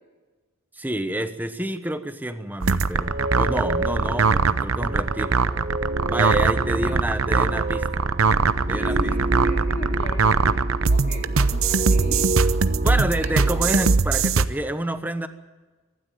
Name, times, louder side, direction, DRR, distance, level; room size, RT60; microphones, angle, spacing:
voice 1, 0.7-5.4 6.1-8.1 8.7-9.1 12.8-15.3, right 1 dB, 10° right, 9 dB, 1.1 m, -29 dB
sound 1, 2.6-14.5, right 4 dB, 90° right, 0.8 m, -21 dB
sound 2, 3.0-14.0, right 2 dB, 40° right, 1.1 m, -28 dB
voice 2, 6.8-7.6 8.7-12.5 13.2-13.3 13.6-13.7, left 1 dB, 35° left, -2 dB, 4.1 m, -38 dB
25.0 x 12.5 x 9.3 m, 1.3 s
head